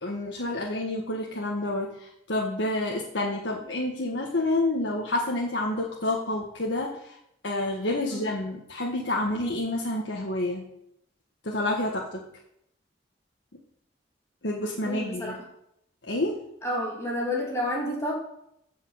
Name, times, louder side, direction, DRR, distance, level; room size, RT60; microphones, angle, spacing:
voice 1, 0.0-7.2 7.4-10.6 11.4-12.2 14.4-15.3 16.1-16.4, left 1 dB, 80° left, -1 dB, 1.6 m, -29 dB
voice 2, 14.8-15.4 16.6-18.2, left 1 dB, 15° left, -3 dB, 3.0 m, -30 dB
14.5 x 5.6 x 7.5 m, 0.78 s
head